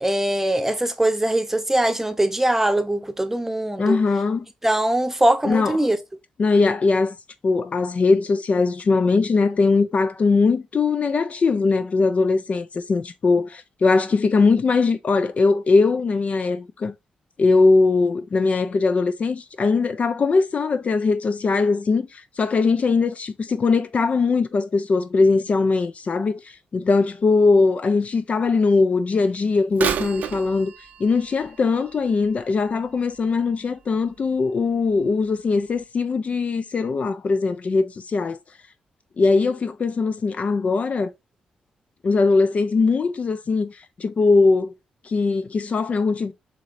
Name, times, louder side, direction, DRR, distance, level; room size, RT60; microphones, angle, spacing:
voice 1, 0.0-4.0 4.6-6.0, right 1 dB, 10° right, 0.8 m, -21 dB
voice 2, 3.8-4.5 5.4-5.8 6.4-7.2 7.4-16.9 17.4-30.7 31.0-38.4 39.2-41.1 42.0-44.7 45.0-46.3, left 4 dB, 50° left, 0.4 m, -20 dB
Bird vocalization bird call bird song / Telephone, 29.7-33.5 34.1-34.2 35.0-35.1 35.8-35.9, right 8 dB, 75° right, 0.5 m, -32 dB
4.9 x 2.9 x 2.6 m
supercardioid pair, 55°, 3 cm